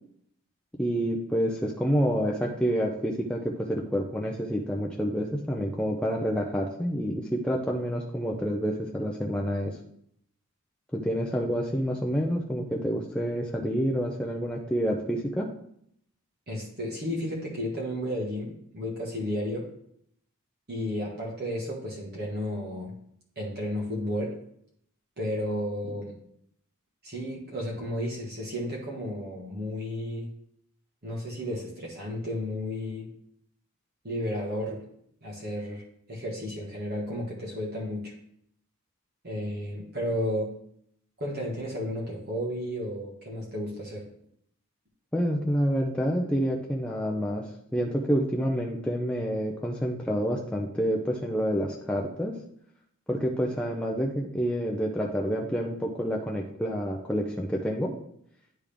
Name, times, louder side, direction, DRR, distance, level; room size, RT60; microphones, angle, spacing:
voice 1, 0.8-9.7 10.9-15.5 45.1-47.4 47.7-52.3 53.1-57.9, equal, 5° left, -2 dB, 0.4 m, -28 dB
voice 2, 16.5-19.7 20.7-22.9 23.4-24.3 25.2-26.1 27.0-30.3 31.0-33.1 34.0-34.8 35.2-35.8 36.1-38.1 39.2-40.5 41.2-44.0, equal, 45° right, -4 dB, 1.4 m, -33 dB
10.0 x 3.5 x 3.4 m, 0.70 s
head